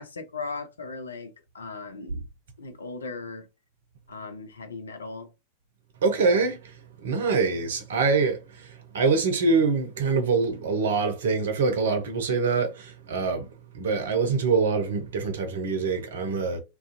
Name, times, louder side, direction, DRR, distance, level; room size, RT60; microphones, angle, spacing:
voice 1, 0.0-2.2 2.6-3.5 4.1-5.3, left 3 dB, 75° left, 0.5 m, -38 dB
voice 2, 6.0-6.6 7.0-13.5 13.7-16.6, right 4 dB, 60° right, 0.6 m, -24 dB
2.4 x 2.2 x 2.6 m
figure-of-eight pair, 90°, 0 cm